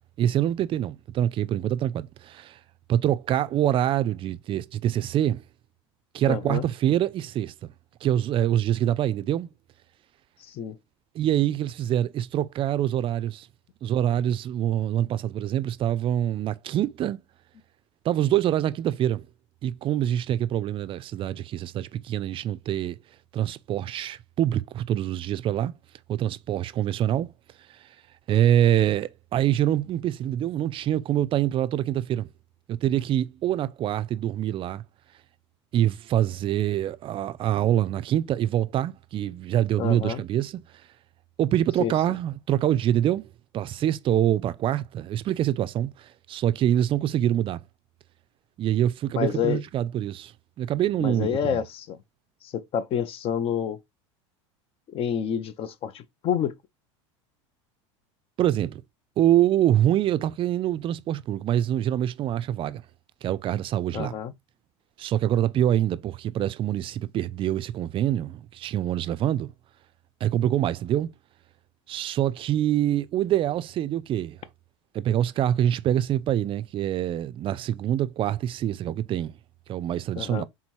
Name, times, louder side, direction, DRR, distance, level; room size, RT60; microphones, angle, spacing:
voice 1, 0.2-2.6 2.9-5.4 6.1-7.5 8.0-9.5 11.1-13.5 13.8-17.2 18.0-19.3 19.6-23.0 23.3-25.7 26.1-27.3 28.3-32.3 32.7-34.8 35.7-40.6 41.4-43.3 43.5-47.6 48.6-50.3 50.6-51.6 58.4-58.8 59.2-62.8 63.2-64.2 65.0-69.5 70.2-71.1 71.9-74.4 74.9-79.3 79.7-80.4, right 11 dB, 35° right, 0.4 m, -25 dB
voice 2, 6.3-6.6 10.4-10.8 39.8-40.2 41.8-41.9 49.2-49.6 51.0-52.0 52.4-53.8 54.9-56.5 63.9-64.3 80.2-80.4, left 8 dB, 40° left, 0.5 m, -28 dB
3.7 x 2.9 x 4.4 m
hypercardioid pair, 95°, 15 cm